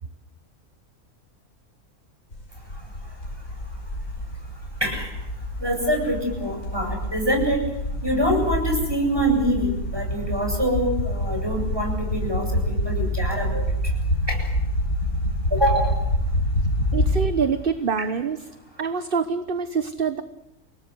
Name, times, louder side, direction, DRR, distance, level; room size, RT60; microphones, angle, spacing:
sound 1, 2.3-17.3, equal, 60° left, 6.0 m, -27 dB
voice 1, 5.6-7.6 8.0-13.6 14.3-14.4 15.5-15.9 18.0-18.1, equal, 15° right, 2 dB, 8.0 m, -25 dB
voice 2, 16.9-18.4 18.8-20.2, right 5 dB, 40° right, 11 dB, 1.2 m, -25 dB
29.5 x 18.5 x 8.0 m, 0.93 s
omnidirectional pair, 1.6 m